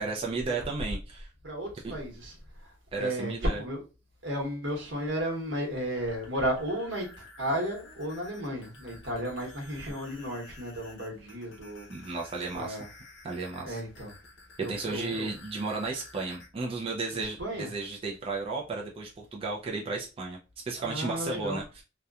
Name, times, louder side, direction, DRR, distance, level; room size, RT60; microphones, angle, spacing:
voice 1, 0.0-1.3 1.8-1.9 2.9-3.6 11.9-12.8 13.2-13.8 14.7-20.4 20.7-21.6, right 3 dB, 30° right, 0.4 m, -34 dB
voice 2, 1.4-3.8 4.2-12.2 12.5-12.9 13.6-14.1 14.6-15.3 17.1-17.7 20.8-21.6, equal, 80° right, 1.0 m, -34 dB
sound 1, 5.8-16.5, left 2 dB, 70° left, 0.7 m, -52 dB
2.8 x 2.1 x 2.3 m
head